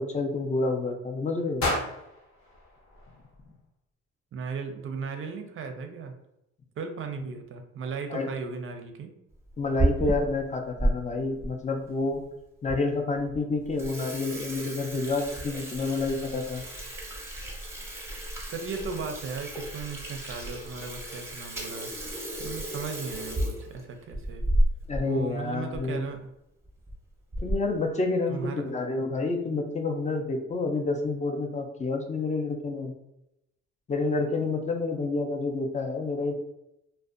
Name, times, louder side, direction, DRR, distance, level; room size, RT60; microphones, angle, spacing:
voice 1, 0.0-1.7 8.1-8.3 9.6-12.2 12.6-16.6 24.9-26.0 27.4-32.9 33.9-36.3, left 3 dB, 25° left, 3 dB, 0.4 m, -29 dB
sound 1, 1.6-3.7, left 1 dB, 65° left, 0.9 m, -33 dB
voice 2, 4.3-6.1 6.8-9.1 18.5-21.9 22.4-24.4 25.0-26.2 28.3-28.7, right 5 dB, 45° right, 6 dB, 0.5 m, -36 dB
Water tap faucet / Sink (filling or washing), 9.5-10.9 11.4-11.5 12.2-12.3 12.7-12.8 13.2-13.4 13.6-25.1 25.4-25.5 25.7-25.9 26.6-26.9 27.3-27.7, right 1 dB, 10° right, 0.7 m, -32 dB
2.5 x 2.1 x 2.4 m, 0.85 s
cardioid pair, 90°, 30 cm